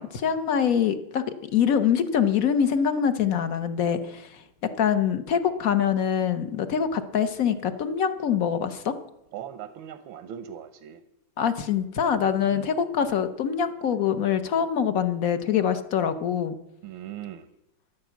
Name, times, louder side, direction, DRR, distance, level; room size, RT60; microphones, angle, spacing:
voice 1, 0.0-4.3 4.6-8.9 11.4-16.5, left 8 dB, 55° left, 10 dB, 1.3 m, -24 dB
voice 2, 9.3-11.0 12.5-12.7 16.8-17.5, right 10 dB, 85° right, 10 dB, 1.6 m, -39 dB
11.5 x 10.5 x 8.2 m, 0.83 s
omnidirectional pair, 2.1 m